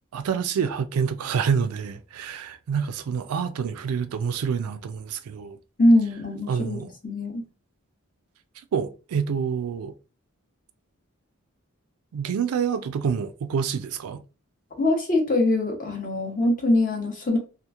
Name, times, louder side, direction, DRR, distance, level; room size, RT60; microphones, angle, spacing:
voice 1, 0.1-5.6 6.5-6.9 8.7-9.9 12.1-14.2, right 6 dB, 85° right, 0.3 m, -27 dB
voice 2, 5.8-7.4 14.8-17.4, left 1 dB, 35° left, 0.7 m, -22 dB
2.9 x 2.4 x 2.3 m
head